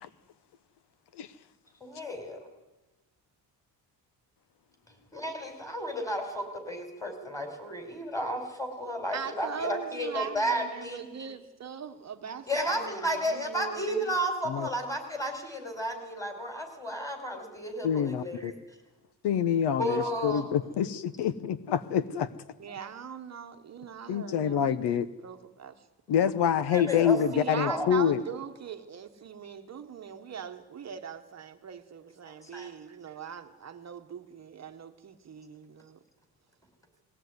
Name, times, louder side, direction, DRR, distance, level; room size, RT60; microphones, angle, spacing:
voice 1, 1.8-2.4 5.1-11.3 12.5-18.5 19.8-20.8 26.7-27.9 32.3-32.7, equal, 10° left, 5 dB, 4.8 m, -33 dB
voice 2, 9.1-14.1 22.6-25.8 27.3-36.0, right 7 dB, 40° right, 6 dB, 1.1 m, -40 dB
voice 3, 17.8-18.5 19.2-22.3 24.1-25.1 26.1-28.2, left 8 dB, 70° left, 16 dB, 1.0 m, -26 dB
20.5 x 17.0 x 9.5 m, 1.1 s
cardioid pair, 140°, 42 cm